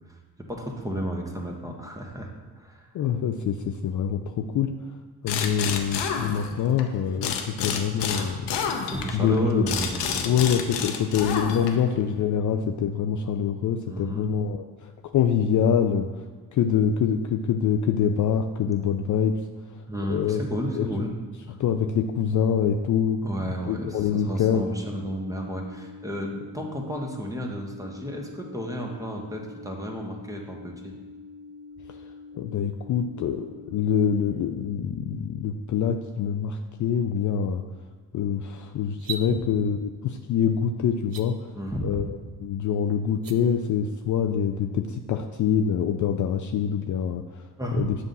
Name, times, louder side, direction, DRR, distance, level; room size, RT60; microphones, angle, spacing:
voice 1, 0.1-2.9 8.9-10.3 13.8-14.3 19.9-21.1 21.5-21.6 23.2-30.9 41.5-42.1 47.6-47.8, equal, 10° right, 0 dB, 1.3 m, -32 dB
voice 2, 2.9-4.7 5.2-8.6 9.1-9.6 10.2-16.3 16.5-19.4 19.7-19.8 20.1-20.4 20.8-21.0 21.6-24.7 31.9-32.0 32.3-37.6 38.1-41.4 41.8-47.4 47.7-48.0, left 8 dB, 45° left, 5 dB, 0.5 m, -25 dB
sound 1, 5.3-6.8 7.2-11.9, left 6 dB, 70° left, 0.8 m, -29 dB
sound 2, 24.3-34.3, left 4 dB, 90° left, 1.1 m, -45 dB
sound 3, 38.9-39.3 41.0-41.2 43.1-43.4, right 8 dB, 50° right, 0.7 m, -35 dB
7.3 x 2.6 x 5.4 m, 1.5 s
supercardioid pair, 60°, 44 cm